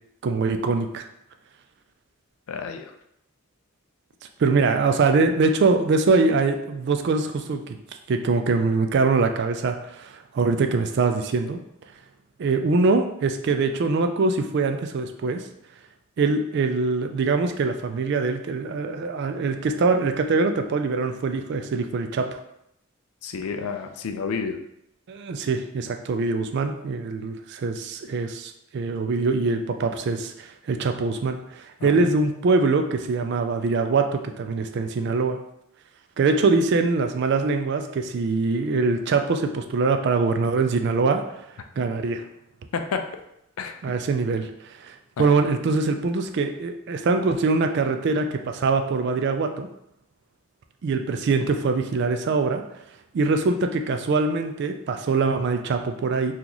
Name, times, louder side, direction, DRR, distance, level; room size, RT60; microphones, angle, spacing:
voice 1, 0.2-1.0 4.4-7.8 8.1-11.6 12.4-15.4 16.2-22.3 25.1-35.4 36.2-41.2 41.8-42.2 43.8-44.5 44.8-49.7 50.8-52.6 53.1-56.3, right 4 dB, 50° right, 6 dB, 0.3 m, -23 dB
voice 2, 2.5-2.9 23.2-24.6 31.8-32.1 42.7-43.0 43.6-43.7 45.2-45.3, left 5 dB, 85° left, 6 dB, 0.4 m, -30 dB
2.9 x 2.4 x 3.8 m, 0.78 s
head